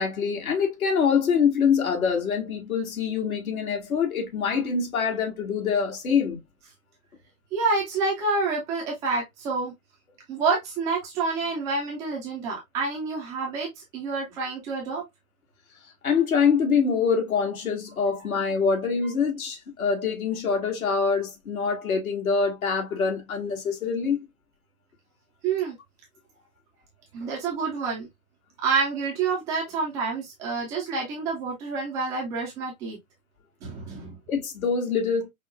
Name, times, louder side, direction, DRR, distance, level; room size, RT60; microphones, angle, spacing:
voice 1, 0.0-6.4 16.0-24.2 34.3-35.3, left 6 dB, 75° left, 1.6 m, -25 dB
voice 2, 7.5-9.7 10.3-15.0 18.1-18.2 25.4-25.8 27.1-28.1 28.6-33.0 33.6-34.2, right 4 dB, 10° right, 0.3 m, -28 dB
5.3 x 2.1 x 2.4 m
hypercardioid pair, 120°, 43 cm